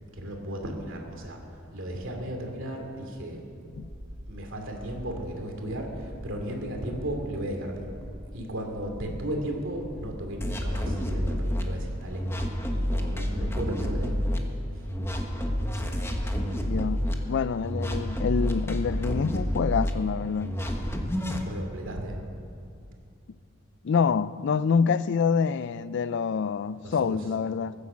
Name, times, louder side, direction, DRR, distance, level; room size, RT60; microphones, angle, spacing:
voice 1, 0.1-1.4 1.7-3.4 4.3-7.9 8.3-12.3 12.7-14.1 21.4-22.2 26.8-27.2, right 1 dB, 65° right, 2.7 m, -35 dB
sound 1, 3.6-16.9, equal, 40° right, 1.2 m, -45 dB
sound 2, 10.4-11.6 12.1-14.4 14.9-17.1 17.6-19.9 20.4-21.4, equal, 10° left, 1.3 m, -29 dB
voice 2, 16.6-17.0 17.3-20.5 23.8-27.7, left 6 dB, 55° left, 0.4 m, -26 dB
19.5 x 9.7 x 7.4 m
head